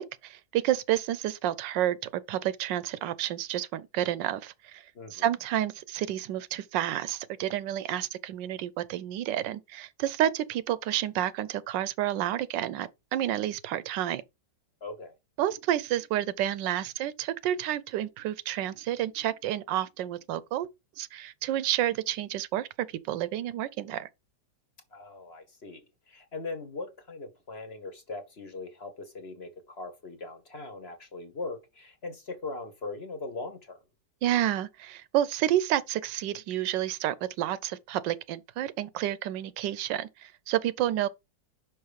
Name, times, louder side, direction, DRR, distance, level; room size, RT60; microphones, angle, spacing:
voice 1, 0.0-4.8 5.1-14.2 15.4-20.7 21.0-24.1 34.2-41.1, right 12 dB, 80° right, 1.2 m, -30 dB
voice 2, 4.9-5.3 14.8-15.1 24.9-33.8, left 3 dB, 40° left, 1.2 m, -40 dB
5.6 x 5.3 x 5.0 m
omnidirectional pair, 2.0 m